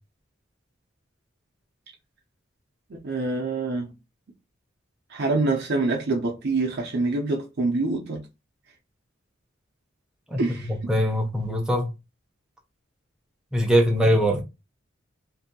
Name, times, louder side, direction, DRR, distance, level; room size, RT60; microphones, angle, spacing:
voice 1, 2.9-3.9 5.1-8.2 10.4-10.7, right 3 dB, 55° right, 0.5 m, -26 dB
voice 2, 10.3-11.9 13.5-14.4, equal, 5° right, 0.5 m, -22 dB
2.6 x 2.6 x 2.6 m
head